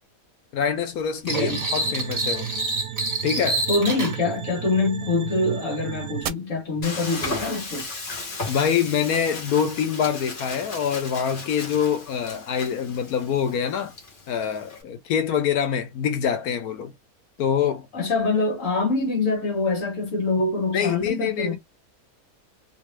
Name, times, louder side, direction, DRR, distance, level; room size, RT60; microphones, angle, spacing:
voice 1, 0.5-2.5 3.2-3.6 8.5-13.9 14.3-16.9 17.4-17.9 20.7-21.6, left 8 dB, 85° left, 1.3 m, -25 dB
voice 2, 1.2-1.6 3.7-7.9 17.9-21.6, left 3 dB, 60° left, 1.6 m, -24 dB
sound 1, 1.3-4.2, right 2 dB, 30° right, 1.3 m, -27 dB
sound 2, 1.3-6.3, right 11 dB, 80° right, 1.0 m, -34 dB
Frying (food), 6.8-14.8, left 3 dB, 40° left, 1.1 m, -36 dB
3.1 x 2.7 x 3.1 m
omnidirectional pair, 1.5 m